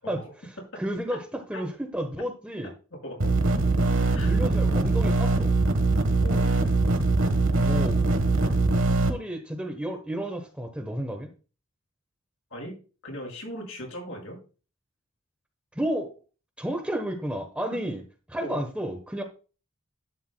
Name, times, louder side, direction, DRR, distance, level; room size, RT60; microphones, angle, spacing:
voice 1, 0.7-2.7 4.2-5.5 7.6-8.0 8.8-11.3 15.7-16.1 16.6-18.0 18.3-19.2, right 1 dB, 5° right, 1.0 m, -32 dB
sound 1, 3.2-9.1, right 2 dB, 55° right, 1.3 m, -22 dB
voice 2, 6.2-6.5 12.5-12.8 13.0-14.4 18.4-18.6, equal, 60° left, 5.7 m, -38 dB
11.5 x 9.3 x 2.2 m
head